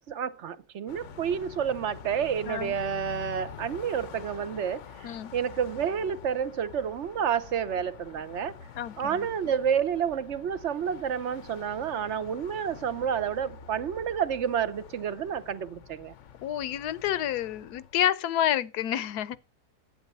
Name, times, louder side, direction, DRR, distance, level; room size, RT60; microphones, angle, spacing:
voice 1, 0.0-8.6 9.0-16.1, right 8 dB, 55° right, 0.9 m, -30 dB
Car passing by, 0.9-18.1, left 7 dB, 55° left, 0.9 m, -46 dB
voice 2, 2.5-2.8 5.0-5.3 8.8-9.3 16.4-19.4, left 11 dB, 75° left, 1.3 m, -29 dB
11.5 x 8.6 x 5.4 m
omnidirectional pair, 1.7 m